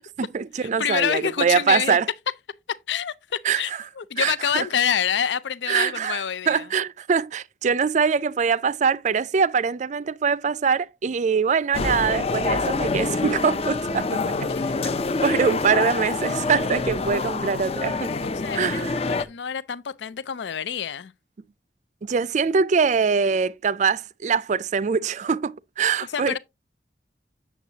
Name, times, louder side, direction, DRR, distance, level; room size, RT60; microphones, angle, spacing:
voice 1, 0.0-2.1 3.4-3.6 4.2-4.7 5.7-14.3 15.2-18.1 18.5-19.0 22.0-26.4, right 6 dB, 40° right, 0.4 m, -23 dB
voice 2, 0.6-2.0 2.7-6.6 14.5-15.1 18.2-21.1 26.1-26.4, left 8 dB, 80° left, 0.5 m, -27 dB
sound 1, 11.7-19.3, left 3 dB, 35° left, 0.5 m, -26 dB
8.4 x 7.2 x 2.8 m
head